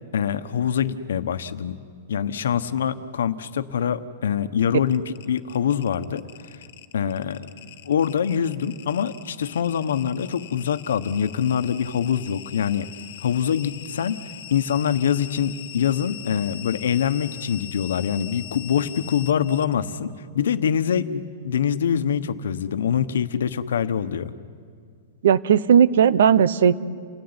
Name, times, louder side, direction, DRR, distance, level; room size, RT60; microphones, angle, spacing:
voice 1, 0.1-1.8 2.1-6.2 6.9-7.5 7.8-12.9 13.2-14.2 14.5-24.3, left 8 dB, 85° left, 12 dB, 1.2 m, -24 dB
sound 1, 4.9-19.7, left 12 dB, 50° left, 1.6 m, -42 dB
voice 2, 25.2-26.8, right 8 dB, 60° right, 17 dB, 0.8 m, -16 dB
29.0 x 17.5 x 9.8 m, 2.1 s
supercardioid pair, 180°, 0 cm